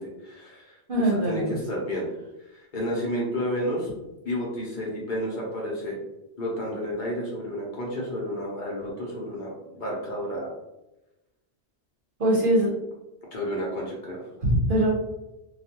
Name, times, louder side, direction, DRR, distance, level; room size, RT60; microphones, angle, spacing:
voice 1, 0.0-2.1 2.5-3.9 4.2-6.0 6.4-10.5 13.3-14.3, equal, 50° left, -4 dB, 0.8 m, -31 dB
voice 2, 0.9-1.4 12.2-12.7 14.4-14.9, right 1 dB, 55° right, -4 dB, 0.9 m, -21 dB
2.4 x 2.2 x 2.8 m, 0.96 s
omnidirectional pair, 1.1 m